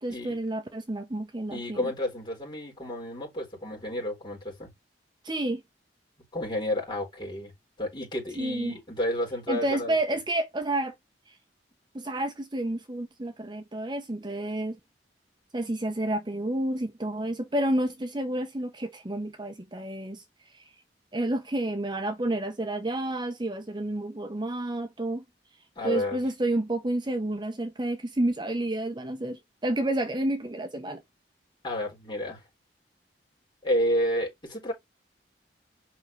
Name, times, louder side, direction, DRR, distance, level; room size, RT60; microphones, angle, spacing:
voice 1, 0.0-1.9 5.2-5.6 8.4-8.7 9.5-10.9 11.3-11.4 11.9-14.8 15.5-20.2 20.5-20.6 21.1-25.2 25.8-31.0, right 1 dB, 25° right, 0.8 m, -30 dB
voice 2, 1.5-4.7 6.3-7.5 7.8-10.0 25.8-26.2 31.6-32.4 33.6-34.7, left 1 dB, 25° left, 4.3 m, -30 dB
7.6 x 5.5 x 3.2 m
head